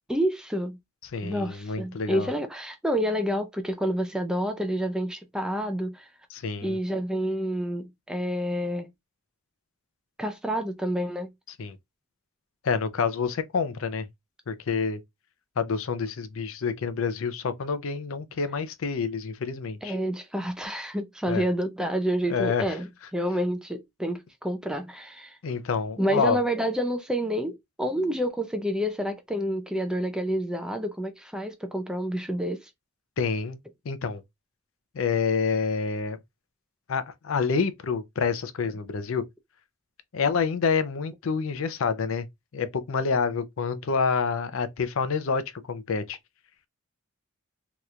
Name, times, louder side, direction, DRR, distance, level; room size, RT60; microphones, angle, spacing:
voice 1, 0.1-0.8 1.2-6.1 6.6-8.9 10.2-11.3 19.8-25.4 26.0-32.7, equal, 5° right, 0.3 m, -28 dB
voice 2, 1.1-2.3 6.3-6.8 11.6-11.8 12.6-14.1 14.5-15.0 15.6-20.0 21.3-21.4 22.3-22.8 25.4-26.4 33.2-33.6 33.9-34.2 34.9-36.2 36.9-39.2 40.1-42.3 42.5-45.4 45.7-46.2, left 5 dB, 65° left, 0.5 m, -27 dB
3.1 x 2.9 x 2.4 m
head